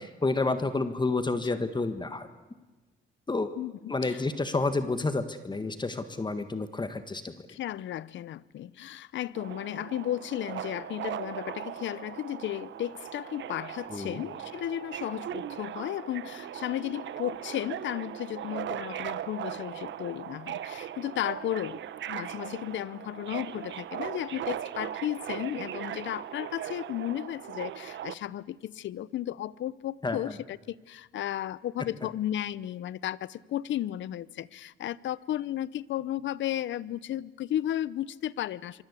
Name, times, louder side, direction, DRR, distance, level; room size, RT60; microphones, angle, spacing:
voice 1, 0.0-2.3 3.3-3.5 3.9-7.3 13.9-14.2 30.0-30.2, left 3 dB, 20° left, 10 dB, 1.6 m, -29 dB
voice 2, 3.6-4.2 7.5-21.8 22.1-38.8, left 12 dB, 70° left, 20 dB, 0.8 m, -34 dB
Subway metro underground, 9.3-28.1, right 11 dB, 70° right, 1.1 m, -39 dB
26.5 x 24.0 x 8.3 m, 1.2 s
cardioid pair, 90°, 20 cm